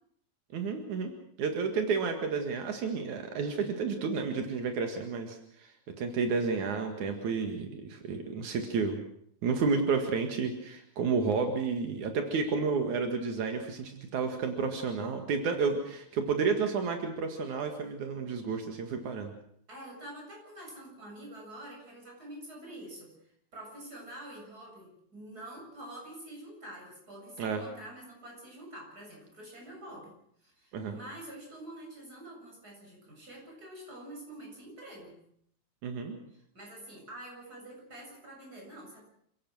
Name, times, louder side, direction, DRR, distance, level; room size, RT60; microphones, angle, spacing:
voice 1, 0.5-1.1 1.4-9.0 9.4-19.3 27.4-27.6 30.7-31.0 35.8-36.2, right 5 dB, 85° right, 5 dB, 3.4 m, -31 dB
voice 2, 19.7-23.1 23.5-35.2 36.3-39.1, right 1 dB, 30° right, -1 dB, 8.2 m, -47 dB
28.0 x 17.0 x 6.3 m, 0.70 s
omnidirectional pair, 3.3 m